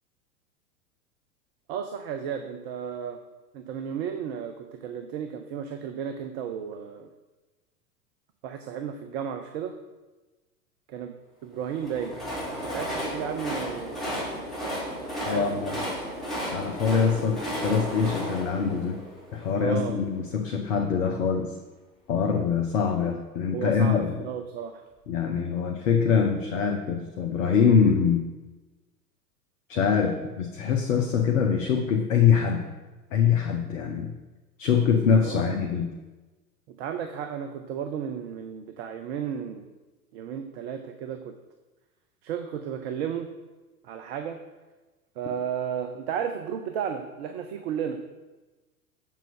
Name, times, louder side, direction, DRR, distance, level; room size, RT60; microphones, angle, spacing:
voice 1, 1.7-3.2 3.5-7.1 8.4-9.8 10.9-11.2 11.4-12.2 12.6-14.3 15.0-15.6 19.6-20.0 23.5-24.8 35.2-35.6 36.7-39.7 40.1-41.3 42.2-43.3 43.8-44.4 45.2-48.0, right 8 dB, 40° right, 7 dB, 0.8 m, -33 dB
Train, 11.7-19.8, equal, ahead, 3.7 m, -33 dB
voice 2, 15.2-15.8 16.5-19.0 19.3-21.5 22.1-24.1 25.1-28.3 29.7-32.7 33.1-34.1 34.6-35.9, left 6 dB, 55° left, 3 dB, 1.2 m, -24 dB
7.5 x 7.4 x 5.5 m, 1.2 s
figure-of-eight pair, 95°, 46 cm